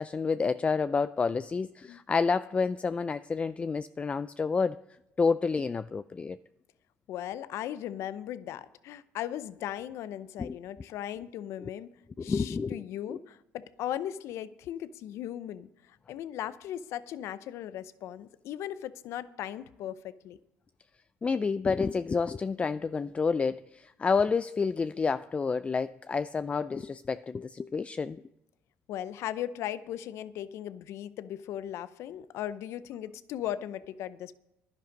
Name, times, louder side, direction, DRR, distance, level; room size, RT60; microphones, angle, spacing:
voice 1, 0.0-4.8 5.2-6.4 10.4-10.6 11.6-11.7 12.2-12.8 13.1-13.2 21.2-28.2, left 5 dB, 25° left, 0.3 m, -29 dB
voice 2, 7.1-11.9 12.2-20.4 28.9-34.3, left 11 dB, 70° left, 0.6 m, -38 dB
11.0 x 10.5 x 5.2 m
supercardioid pair, 85°, 5 cm